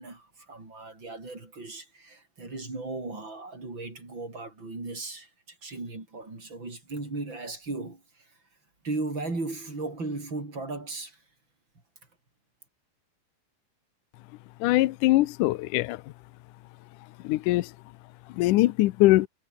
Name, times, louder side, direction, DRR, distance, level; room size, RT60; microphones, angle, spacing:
voice 1, 0.0-8.3 8.8-11.2, right 3 dB, 25° right, 7.5 m, -36 dB
voice 2, 14.6-16.0 17.2-17.7 18.3-19.3, left 18 dB, 85° left, 1.8 m, -22 dB
omnidirectional pair, 4.6 m